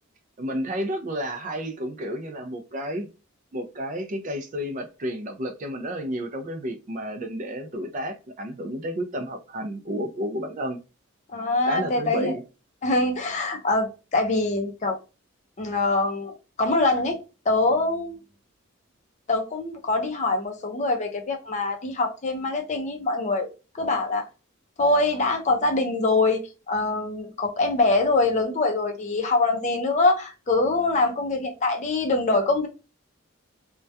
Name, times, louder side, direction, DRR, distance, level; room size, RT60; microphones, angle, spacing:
voice 1, 0.4-3.1 3.5-10.8 11.7-12.4, equal, 40° right, 0.4 m, -31 dB
voice 2, 11.3-12.3 12.8-15.0 15.6-17.2 17.5-18.2 19.3-23.5 23.8-24.3 24.8-32.7, left 2 dB, 35° left, 0.4 m, -24 dB
2.2 x 2.2 x 2.6 m
head